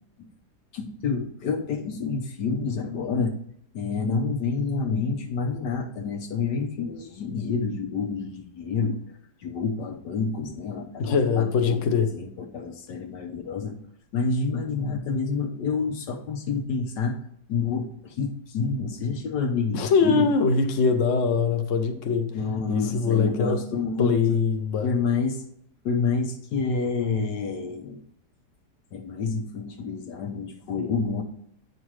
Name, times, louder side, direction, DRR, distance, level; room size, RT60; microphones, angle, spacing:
voice 1, 0.7-3.4 3.7-9.0 9.4-13.8 14.1-17.2 17.5-20.3 22.3-24.4 24.8-25.4 25.8-28.0 28.9-31.2, left 4 dB, 85° left, 1 dB, 1.5 m, -28 dB
voice 2, 11.0-12.1 19.7-22.3 22.7-23.6 24.0-24.9, left 5 dB, 55° left, 5 dB, 1.2 m, -22 dB
8.9 x 5.4 x 4.8 m, 0.70 s
omnidirectional pair, 1.8 m